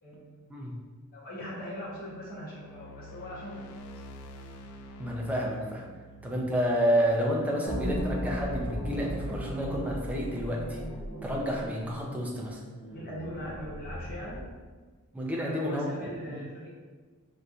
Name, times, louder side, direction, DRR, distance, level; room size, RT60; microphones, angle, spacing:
voice 1, 0.0-0.6 1.1-3.7 12.9-14.5 15.3-16.7, equal, 45° left, -6 dB, 0.8 m, -41 dB
sound 1, 1.8-8.0, equal, 90° left, 0.3 m, -48 dB
voice 2, 5.0-5.9 6.2-10.8 11.2-12.6 15.1-15.8 16.3-16.4, equal, 5° right, -3 dB, 0.4 m, -30 dB
sound 2, 7.7-14.6, equal, 70° left, 1.1 m, -36 dB
4.2 x 2.5 x 2.3 m, 1.4 s
head